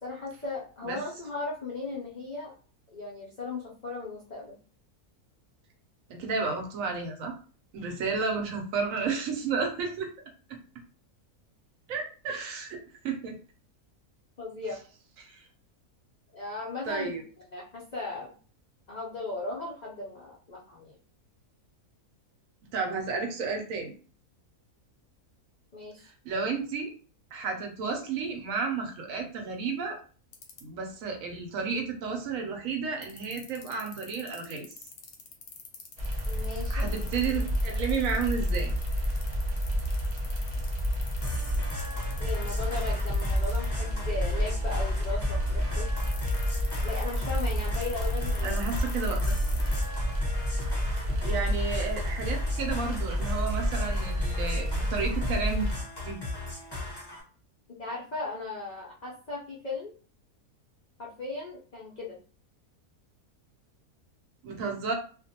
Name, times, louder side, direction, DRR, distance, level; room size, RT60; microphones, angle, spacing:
voice 1, 0.0-2.5 2.9-4.6 14.4-14.8 16.3-17.2 17.5-18.3 18.9-20.9 25.7-26.1 36.3-36.9 42.2-46.0 46.8-48.6 57.8-59.9 61.0-62.2, left 3 dB, 85° left, -4 dB, 0.3 m, -37 dB
voice 2, 6.1-7.3 7.7-10.1 10.5-10.6 11.9-13.4 15.2-15.4 16.9-17.2 22.7-23.9 26.2-26.9 27.3-30.0 30.6-34.7 36.7-38.7 48.4-49.2 51.2-55.7 56.0-56.2 64.4-64.9, right 5 dB, 70° right, 3 dB, 0.9 m, -32 dB
sound 1, 30.3-30.6 33.0-43.7 46.0-49.9, left 7 dB, 70° left, 0.9 m, -45 dB
sound 2, 36.0-55.7, equal, 90° right, 0.3 m, -30 dB
sound 3, 41.2-57.2, equal, 25° left, 0.6 m, -35 dB
2.5 x 2.1 x 2.7 m, 0.40 s
omnidirectional pair, 1.6 m